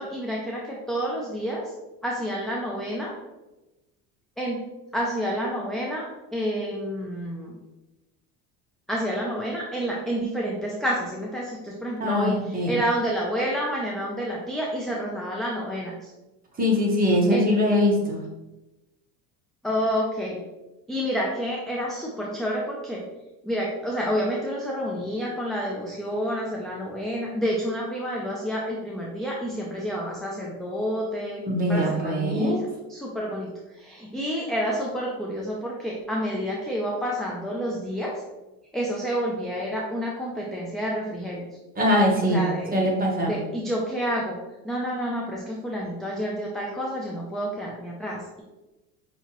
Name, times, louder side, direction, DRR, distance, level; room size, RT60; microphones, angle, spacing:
voice 1, 0.0-1.7 2.0-3.1 4.4-4.6 4.9-7.5 8.9-12.4 12.7-15.9 17.3-17.5 19.6-20.4 20.9-23.0 23.4-31.4 31.7-33.5 33.8-38.1 38.7-41.5 42.3-42.7 43.3-44.4 44.6-48.4, equal, ahead, -3 dB, 0.3 m, -29 dB
voice 2, 12.0-12.8 16.6-18.2 31.4-32.6 41.7-42.4 42.7-43.4, left 1 dB, 20° right, -2 dB, 1.2 m, -22 dB
5.5 x 2.9 x 2.9 m, 1.0 s
supercardioid pair, 110°, 45 cm